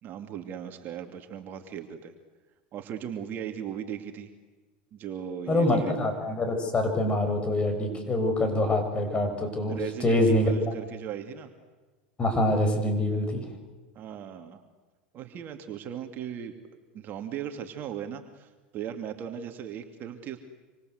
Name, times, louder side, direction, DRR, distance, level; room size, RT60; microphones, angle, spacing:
voice 1, 0.0-2.1 2.7-4.3 4.9-6.0 9.7-11.5 13.9-14.6 15.1-16.6 16.9-20.4, right 9 dB, 40° right, 6 dB, 2.7 m, -37 dB
voice 2, 5.5-10.5 12.2-13.5, left 1 dB, 20° left, 5 dB, 7.0 m, -25 dB
27.0 x 26.0 x 8.1 m, 1.3 s
hypercardioid pair, 105°, 5 cm